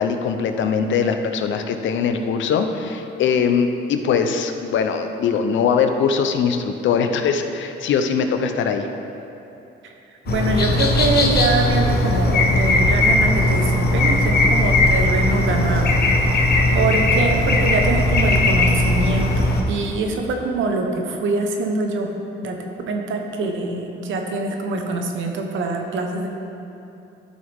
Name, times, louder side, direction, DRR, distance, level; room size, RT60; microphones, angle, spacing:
voice 1, 0.0-8.9, left 6 dB, 70° left, 6 dB, 0.7 m, -21 dB
sound 1, 10.3-19.6, left 2 dB, 55° left, 1.2 m, -18 dB
voice 2, 10.3-16.0 16.3-26.3, right 3 dB, 75° right, 3 dB, 1.1 m, -24 dB
12.5 x 6.4 x 3.5 m, 2.8 s
cardioid pair, 90°, 20 cm